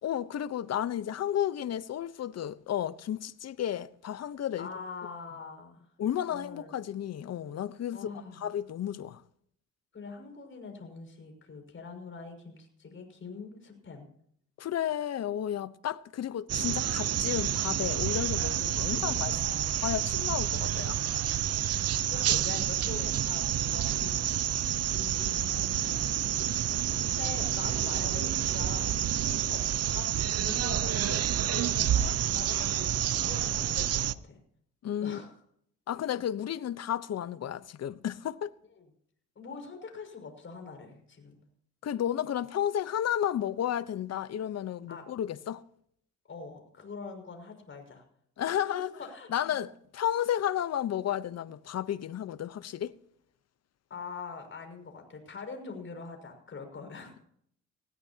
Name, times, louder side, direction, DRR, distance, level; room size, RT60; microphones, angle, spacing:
voice 1, 0.0-4.7 6.0-8.1 8.4-9.2 14.6-19.3 19.8-21.0 34.8-35.2 35.9-38.5 41.8-45.6 48.4-48.9 49.3-53.0, left 10 dB, 55° left, 1.0 m, -32 dB
voice 2, 4.6-5.9 6.3-6.8 7.9-8.5 9.9-14.1 18.9-19.7 20.1-20.2 20.5-21.1 22.0-26.2 27.0-28.9 29.5-29.6 29.9-30.1 30.3-34.4 35.0-35.3 38.8-38.9 39.4-41.4 44.9-45.1 46.3-48.0 48.6-49.3 53.9-57.1, left 4 dB, 40° left, 6.0 m, -44 dB
sound 1, 16.5-34.1, right 11 dB, 55° right, 0.7 m, -29 dB
19.5 x 17.0 x 2.9 m
cardioid pair, 90°, 30 cm